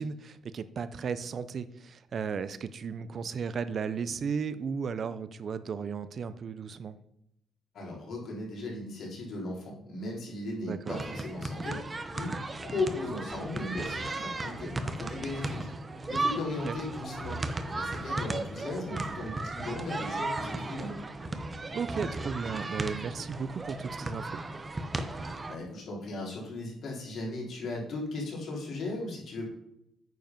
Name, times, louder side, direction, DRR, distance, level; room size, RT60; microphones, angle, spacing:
voice 1, 0.0-6.9 10.6-11.0 16.6-16.7 21.7-24.4, right 6 dB, 50° right, 14 dB, 0.7 m, -35 dB
voice 2, 7.7-11.8 12.1-12.3 12.6-15.6 16.1-17.4 17.6-20.9 25.5-29.4, left 2 dB, 65° left, -3 dB, 3.9 m, -37 dB
sound 1, 10.9-25.6, right 2 dB, 25° right, 0.9 m, -35 dB
9.3 x 5.2 x 5.4 m, 0.79 s
cardioid pair, 90°, 0 cm